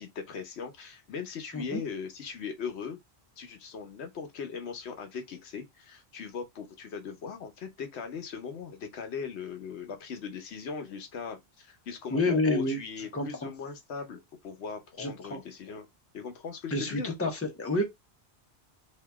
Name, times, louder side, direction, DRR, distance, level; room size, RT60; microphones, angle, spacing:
voice 1, 0.0-3.0 3.4-15.9 16.1-17.1, left 6 dB, 90° left, 1.0 m, -39 dB
voice 2, 12.1-12.8 13.1-13.5 15.0-15.4 16.7-17.8, left 2 dB, 15° left, 0.8 m, -29 dB
2.9 x 2.7 x 3.4 m
omnidirectional pair, 1.1 m